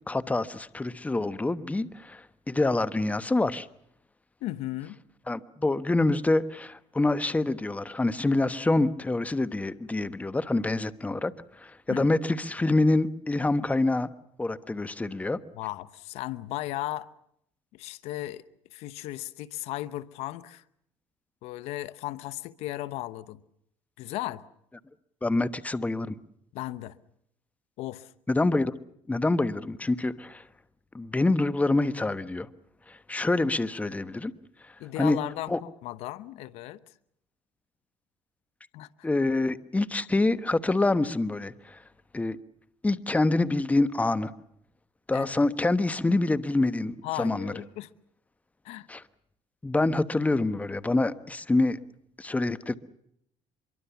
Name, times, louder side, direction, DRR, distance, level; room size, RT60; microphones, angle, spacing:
voice 1, 0.1-3.7 5.3-11.3 11.6-14.1 14.4-15.4 25.2-26.1 28.3-28.7 29.1-30.4 30.9-32.5 32.9-34.3 35.0-35.2 35.5-35.6 39.0-41.8 42.1-42.4 42.8-44.3 45.1-47.5 48.9-49.0 49.6-51.8 52.2-52.7, left 2 dB, 15° left, 1.1 m, -26 dB
voice 2, 4.4-5.0 11.9-12.1 15.5-17.1 17.7-18.4 18.7-20.6 21.4-23.4 24.0-24.4 26.5-27.0 27.8-28.1 34.8-36.8 38.7-39.1 45.1-45.3 47.0-47.9 48.6-48.9, left 16 dB, 80° left, 0.9 m, -36 dB
24.5 x 23.0 x 7.1 m
cardioid pair, 95°, 11 cm